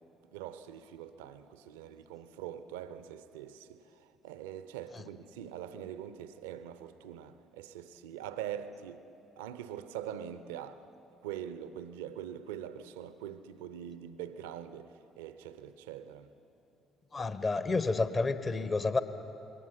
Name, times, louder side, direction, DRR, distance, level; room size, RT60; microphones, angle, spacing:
voice 1, 0.3-9.0 9.4-10.8 11.2-16.3, right 10 dB, 70° right, 0.7 m, -43 dB
voice 2, 17.1-19.0, left 3 dB, 30° left, 1.1 m, -30 dB
27.5 x 21.0 x 5.7 m
figure-of-eight pair, 50°, 0 cm